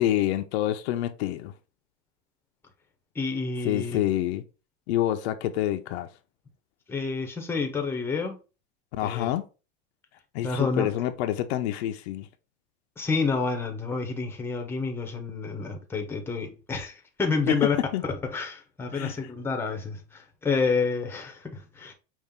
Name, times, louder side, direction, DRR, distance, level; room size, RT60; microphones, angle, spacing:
voice 1, 0.0-1.5 3.6-4.4 4.9-6.1 8.9-9.5 10.3-12.3 17.5-17.6 17.9-18.0 18.9-19.2, left 13 dB, 75° left, 0.7 m, -27 dB
voice 2, 3.1-4.0 6.9-8.4 9.0-9.3 10.4-10.9 13.0-17.8 18.3-21.9, left 4 dB, 5° left, 0.7 m, -29 dB
5.5 x 2.5 x 3.6 m
supercardioid pair, 140°, 33 cm